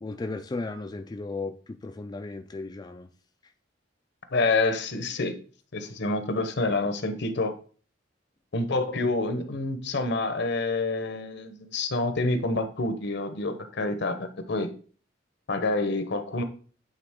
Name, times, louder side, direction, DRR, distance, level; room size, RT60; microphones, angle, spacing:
voice 1, 0.0-3.1, left 3 dB, 20° left, 0.4 m, -35 dB
voice 2, 4.3-5.3 5.7-7.5 8.5-14.7 15.5-16.4, left 2 dB, 65° left, 0.9 m, -27 dB
9.0 x 3.8 x 3.6 m
head